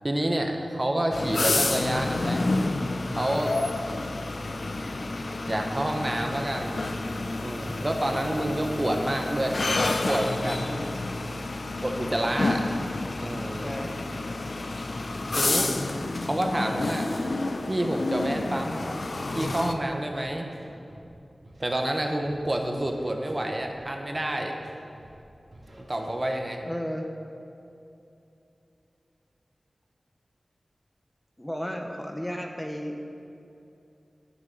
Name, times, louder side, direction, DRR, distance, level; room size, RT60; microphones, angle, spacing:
voice 1, 0.0-2.5 3.1-3.5 5.5-6.9 7.4-10.7 11.8-12.7 13.2-13.7 15.4-15.8 16.2-17.1 17.6-18.9 19.3-20.5 21.6-24.6 25.9-26.6, right 1 dB, 30° right, 3 dB, 1.0 m, -28 dB
sound 1, 1.1-19.7, left 2 dB, 60° left, 0.6 m, -29 dB
voice 2, 13.6-14.0 26.6-27.0 31.4-33.0, equal, 10° left, 3 dB, 1.0 m, -34 dB
Scratching (performance technique), 17.1-18.3 18.6-19.7 20.0-21.1 21.4-22.5 22.8-23.8 24.1-24.7 25.0-25.2 25.5-26.3, right 1 dB, 55° right, 2.3 m, -50 dB
8.9 x 6.9 x 8.6 m, 2.8 s
wide cardioid pair, 80°, 0 cm